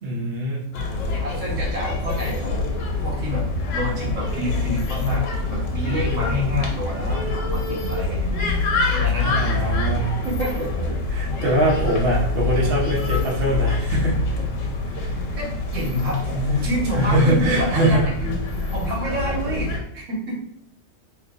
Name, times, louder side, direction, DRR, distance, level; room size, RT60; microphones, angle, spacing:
voice 1, 0.0-0.7 9.2-10.0 11.1-14.2 15.0-15.1 16.9-18.0, right 1 dB, 55° right, -4 dB, 1.1 m, -22 dB
sound 1, 0.7-19.8, left 3 dB, 85° left, 1.1 m, -25 dB
voice 2, 1.2-2.6 3.0-3.4 3.7-9.8 10.2-11.0 15.4-20.4, left 1 dB, 80° right, -4 dB, 1.6 m, -28 dB
3.2 x 2.9 x 3.7 m, 0.72 s
omnidirectional pair, 1.3 m